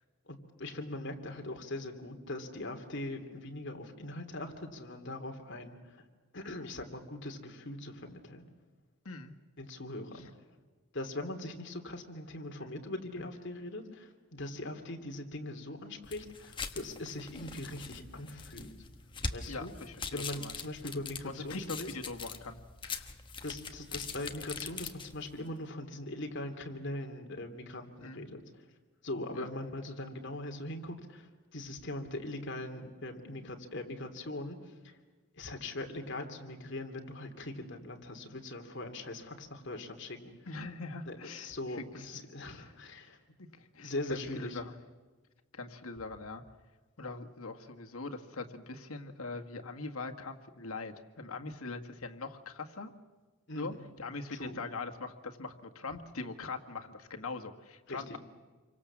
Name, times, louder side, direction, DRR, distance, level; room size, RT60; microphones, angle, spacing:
voice 1, 0.3-6.0 6.3-8.4 9.6-10.3 10.9-18.7 19.3-19.7 20.0-21.9 23.4-28.4 29.0-35.0 35.4-40.4 41.0-43.2 43.8-44.6 53.5-53.9 54.3-54.6 57.9-58.2, left 1 dB, 55° left, 4 dB, 2.8 m, -41 dB
sound 1, 16.0-25.4, left 4 dB, 25° left, 1.4 m, -43 dB
voice 2, 19.5-20.5 21.2-22.6 22.8-23.1 28.0-28.2 29.3-29.5 40.5-41.5 43.4-44.6 45.5-46.4 47.0-52.9 53.5-58.2, left 3 dB, 90° left, 4 dB, 1.8 m, -42 dB
28.0 x 24.0 x 7.4 m, 1.4 s
head